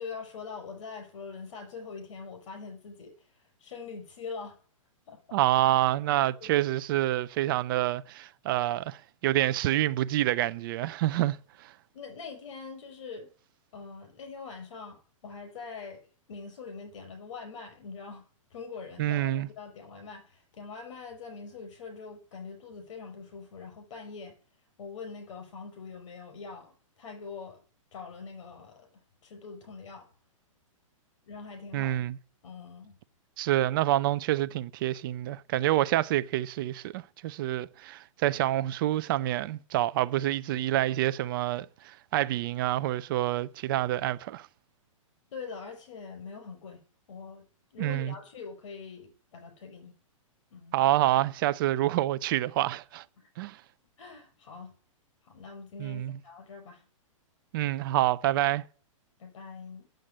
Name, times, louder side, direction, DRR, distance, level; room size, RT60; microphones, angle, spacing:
voice 1, 0.0-4.6 5.1-5.4 6.4-6.6 11.9-13.3 13.7-18.2 18.5-24.4 24.8-27.6 27.9-30.1 31.2-32.0 32.4-33.0 45.3-47.4 47.7-50.0 50.5-50.8 53.2-53.3 54.0-54.7 55.2-56.8 59.2-59.9, left 5 dB, 60° left, 5.9 m, -43 dB
voice 2, 5.3-11.7 19.0-19.5 31.7-32.2 33.4-44.5 47.8-48.1 50.7-53.0 53.4-53.6 55.8-56.2 57.5-58.6, right 14 dB, 40° right, 0.5 m, -27 dB
9.0 x 7.8 x 8.5 m
hypercardioid pair, 145°, 17 cm